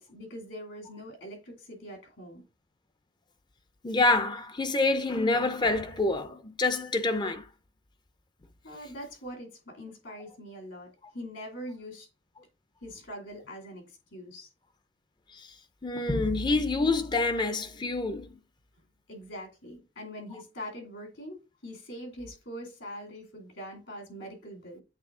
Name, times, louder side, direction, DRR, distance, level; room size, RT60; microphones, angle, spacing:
voice 1, 0.0-2.4 8.6-12.1 12.8-14.5 19.1-24.8, equal, 65° left, 2.7 m, -43 dB
voice 2, 3.8-7.5 15.3-15.5 15.8-18.4, left 2 dB, 20° left, 0.5 m, -27 dB
8.2 x 3.1 x 3.7 m
head